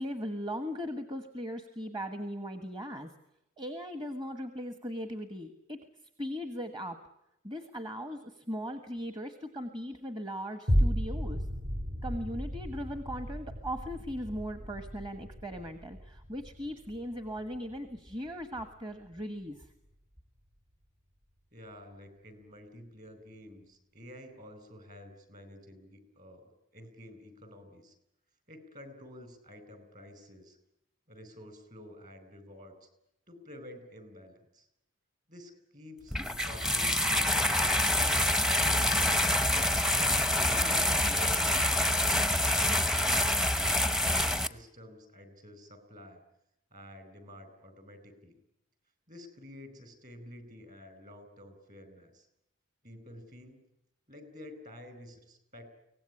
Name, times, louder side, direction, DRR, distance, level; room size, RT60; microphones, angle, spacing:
voice 1, 0.0-3.1 3.6-5.8 6.2-7.0 7.4-11.5 12.0-19.7, equal, 20° right, 9 dB, 1.4 m, -38 dB
sound 1, 10.7-19.2 19.7-19.8, equal, 60° right, 3.9 m, -34 dB
voice 2, 21.5-27.9 28.5-30.6 31.1-32.9 33.3-34.7 35.3-39.3 40.2-43.5 43.9-46.2 46.7-48.4 49.1-52.3 52.8-53.6 54.1-55.7, left 1 dB, 40° right, 11 dB, 4.8 m, -50 dB
sound 2, 36.1-44.5, left 1 dB, ahead, 0.8 m, -26 dB
24.0 x 18.0 x 9.8 m, 0.84 s
head